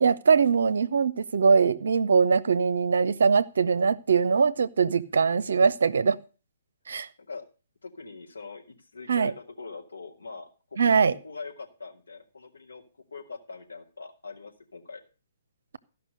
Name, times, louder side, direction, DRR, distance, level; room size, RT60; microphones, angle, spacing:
voice 1, 0.0-6.2 6.9-7.1 9.1-9.3 10.8-11.1, right 5 dB, 65° right, 0.5 m, -22 dB
voice 2, 7.8-12.8 13.1-15.0, left 4 dB, 75° left, 2.4 m, -43 dB
14.0 x 5.7 x 6.4 m
figure-of-eight pair, 125°, 0 cm